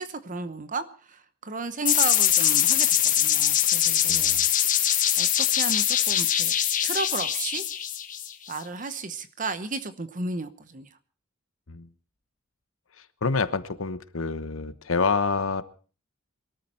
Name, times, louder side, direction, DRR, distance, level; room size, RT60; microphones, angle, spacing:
voice 1, 0.0-4.7 5.2-6.5 6.8-7.6 8.5-10.9, right 3 dB, 40° right, 13 dB, 1.0 m, -34 dB
sound 1, 1.9-8.6, left 11 dB, 40° left, 1.4 m, -23 dB
voice 2, 4.1-4.4 11.7-11.9 13.0-15.6, left 4 dB, 80° left, 14 dB, 1.1 m, -27 dB
22.5 x 13.5 x 4.4 m, 0.38 s
head